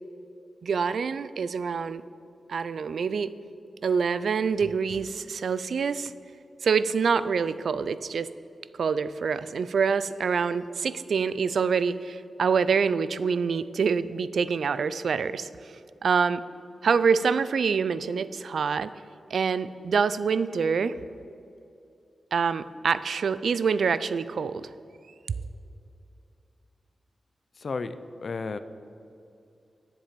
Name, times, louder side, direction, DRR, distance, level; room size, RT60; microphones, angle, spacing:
voice 1, 0.6-2.0 2.5-3.3 3.8-6.1 6.6-8.3 8.8-15.5 16.0-16.4 16.8-18.9 19.3-20.9 22.3-24.7, right 5 dB, 70° right, 15 dB, 0.3 m, -26 dB
voice 2, 27.6-28.6, left 4 dB, 45° left, 12 dB, 0.4 m, -33 dB
10.5 x 7.4 x 5.1 m, 2.6 s
wide cardioid pair, 155°, 0 cm